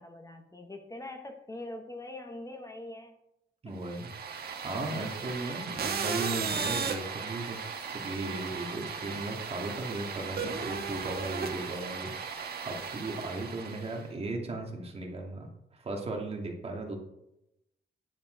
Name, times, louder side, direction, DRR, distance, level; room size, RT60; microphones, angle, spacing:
voice 1, 0.0-3.2, left 2 dB, 20° left, 4 dB, 1.3 m, -43 dB
voice 2, 3.6-4.1 4.6-17.0, right 2 dB, 35° right, 1 dB, 2.4 m, -37 dB
sound 1, 3.8-14.0, right 5 dB, 60° right, 1.5 m, -36 dB
10.5 x 8.7 x 4.0 m, 0.84 s
wide cardioid pair, 130°, 18 cm